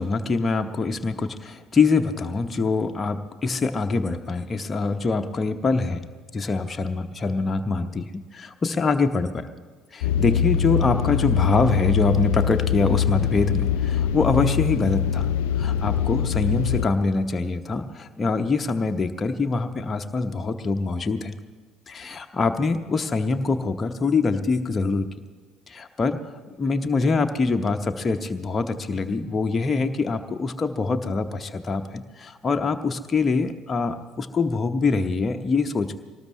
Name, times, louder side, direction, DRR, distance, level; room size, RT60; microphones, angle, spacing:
voice 1, 0.0-6.0 6.3-9.5 9.9-15.3 15.6-21.4 21.9-25.1 25.7-36.0, left 4 dB, 30° left, 6 dB, 0.9 m, -24 dB
sound 1, 10.0-16.9, left 9 dB, 65° left, 0.5 m, -23 dB
24.0 x 19.0 x 3.2 m, 1.4 s
figure-of-eight pair, 55°, 0 cm